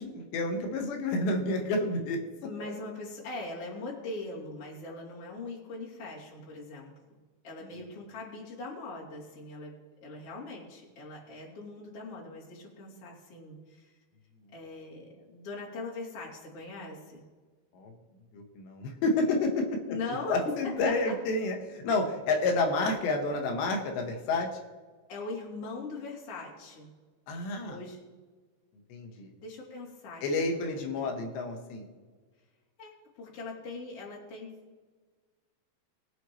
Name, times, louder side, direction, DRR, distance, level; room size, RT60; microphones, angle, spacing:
voice 1, 0.0-2.2 7.7-7.8 17.7-17.9 18.3-20.0 20.3-24.5 27.3-27.8 28.9-29.3 30.2-31.8, left 2 dB, 70° left, 3 dB, 3.4 m, -29 dB
voice 2, 2.4-6.9 7.4-9.7 10.0-13.9 14.5-17.2 19.9-21.1 25.1-26.9 27.7-28.0 29.4-30.8 32.8-32.9 33.2-34.5, left 3 dB, 35° left, -6 dB, 3.3 m, -41 dB
22.5 x 7.9 x 3.1 m, 1.4 s
omnidirectional pair, 5.6 m